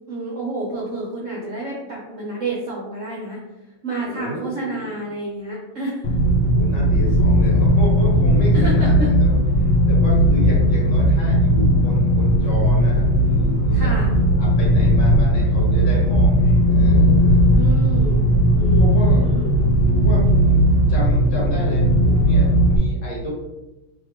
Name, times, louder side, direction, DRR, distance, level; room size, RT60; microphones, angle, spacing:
voice 1, 0.0-6.2 8.5-9.1 13.7-14.1 17.5-18.2 18.5-19.5, right 2 dB, 60° right, -4 dB, 0.8 m, -30 dB
voice 2, 4.0-4.9 6.5-13.9 14.4-17.5 18.8-19.3 19.9-23.3, equal, 60° left, -4 dB, 1.8 m, -31 dB
sound 1, 6.0-22.8, equal, 75° left, 1.2 m, -16 dB
3.3 x 2.9 x 4.2 m, 1.0 s
omnidirectional pair, 2.3 m